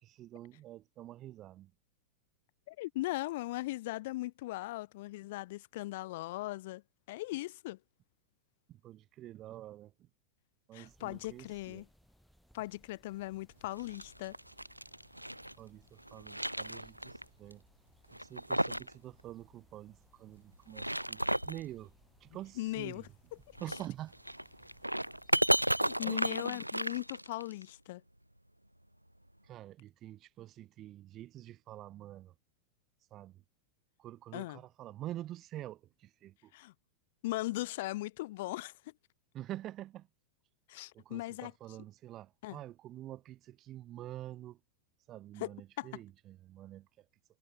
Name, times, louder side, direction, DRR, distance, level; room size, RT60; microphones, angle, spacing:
voice 1, 0.0-1.7 8.7-10.1 10.7-11.8 15.6-17.6 18.1-21.9 22.2-23.0 23.6-24.2 25.8-26.6 29.4-32.3 33.1-33.4 34.0-36.5 39.3-40.1 40.9-44.6 45.1-47.1, right 13 dB, 35° right, 2.4 m, -47 dB
voice 2, 2.7-6.8 7.1-7.8 10.7-11.9 12.5-14.4 22.6-23.1 25.8-28.0 34.3-34.6 36.5-36.7 37.2-38.7 40.7-41.5 42.4-42.6 45.4-45.5 45.8-45.9, left 18 dB, 50° left, 1.0 m, -38 dB
sound 1, 10.8-26.0, equal, ahead, 2.5 m, -66 dB
sound 2, 13.7-15.5 16.0-17.2 17.5-17.6 18.1-18.9 19.2-19.3 20.5-21.6 23.6-27.6, right 1 dB, 90° right, 0.4 m, -33 dB
figure-of-eight pair, 90°, 0 cm